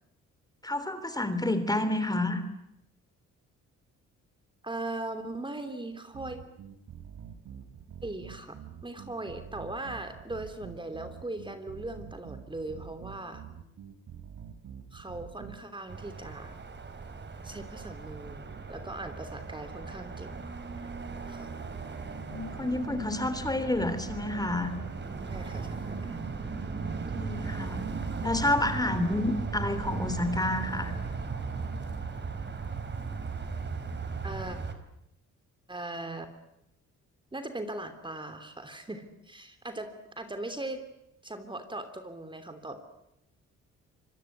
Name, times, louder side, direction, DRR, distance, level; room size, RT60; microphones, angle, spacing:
voice 1, 0.6-2.4 22.3-24.7 27.1-27.9 28.2-30.9, left 2 dB, 15° left, 11 dB, 3.4 m, -29 dB
voice 2, 4.6-6.4 8.0-8.5 8.8-13.4 14.9-16.5 17.4-20.3 21.3-21.5 25.3-26.2 34.2-34.6 35.7-36.3 37.3-39.9 40.2-40.8 41.2-42.8, right 2 dB, 15° right, 8 dB, 3.1 m, -39 dB
sound 1, 6.1-15.6, right 8 dB, 70° right, 3.2 m, -46 dB
sound 2, 15.9-34.7, right 4 dB, 35° right, 3.9 m, -37 dB
25.5 x 21.5 x 9.7 m, 0.82 s
cardioid pair, 90°, 30 cm